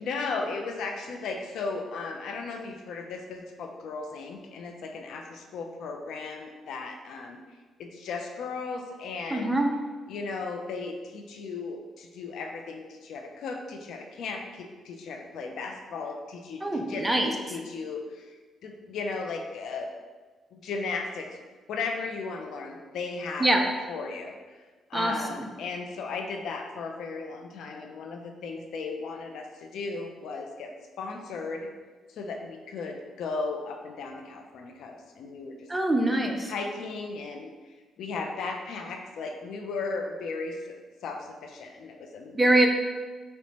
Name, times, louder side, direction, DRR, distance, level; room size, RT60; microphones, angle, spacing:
voice 1, 0.0-7.4 7.8-9.6 10.1-18.4 18.6-19.9 20.5-21.4 21.7-24.4 24.9-30.7 31.0-31.7 32.1-35.7 36.4-40.8 41.0-42.6, left 4 dB, 75° left, 3 dB, 0.4 m, -36 dB
voice 2, 9.3-9.7 16.6-17.3 23.4-23.6 24.9-25.5 35.7-36.5 42.3-42.7, right 1 dB, 15° right, 3 dB, 0.4 m, -24 dB
4.3 x 2.1 x 2.8 m, 1.3 s
cardioid pair, 90°, 0 cm